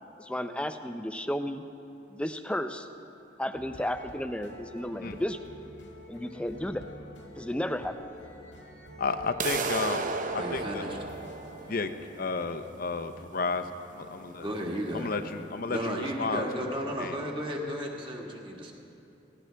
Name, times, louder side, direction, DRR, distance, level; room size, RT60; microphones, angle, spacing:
voice 1, 0.2-1.6 2.1-2.9 3.4-5.4 6.1-6.8 7.4-7.9, left 1 dB, 5° left, 9 dB, 0.5 m, -33 dB
sound 1, 3.5-11.9, left 1 dB, 75° left, 1.8 m, -48 dB
voice 2, 9.0-10.8 11.7-11.9 12.2-13.7 13.9-14.5 14.9-16.6 17.0-17.1, left 4 dB, 50° left, 9 dB, 0.7 m, -32 dB
sound 2, 9.4-15.4, right 4 dB, 45° right, 0.7 m, -35 dB
voice 3, 10.4-11.0 14.4-15.2 15.7-18.7, equal, 30° right, 0 dB, 1.7 m, -34 dB
18.0 x 16.0 x 3.4 m, 2.8 s
head